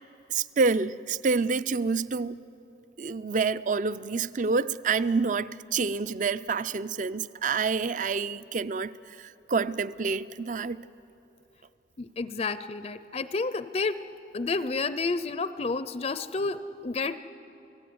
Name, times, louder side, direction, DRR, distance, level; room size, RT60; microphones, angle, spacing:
voice 1, 0.3-2.4 3.0-10.9, right 4 dB, 45° right, 0.5 m, -28 dB
voice 2, 12.0-14.0 14.3-17.2, left 3 dB, 35° left, 0.5 m, -30 dB
29.5 x 17.5 x 9.5 m
head